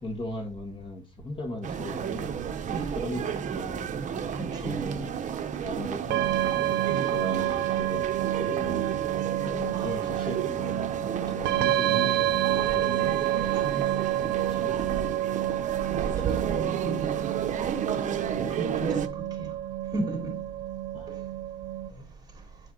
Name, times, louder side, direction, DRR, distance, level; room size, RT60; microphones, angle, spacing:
voice 1, 0.0-2.3 2.9-5.1 5.6-6.7 7.1-8.1 8.3-9.0 9.8-13.1 14.2-15.3 20.9-21.1, left 1 dB, 30° left, 1.8 m, -38 dB
sound 1, 1.6-19.1, right 8 dB, 45° right, 0.8 m, -33 dB
voice 2, 4.3-5.1 6.8-7.0 9.4-9.9 13.5-14.1 15.9-16.1 16.4-17.3 18.4-19.1 19.4-19.5 19.9-20.3 21.1-21.2, right 3 dB, 25° right, 3.2 m, -34 dB
sound 2, 6.1-21.9, right 13 dB, 85° right, 0.6 m, -29 dB
9.2 x 4.6 x 3.9 m
cardioid pair, 110°, 17 cm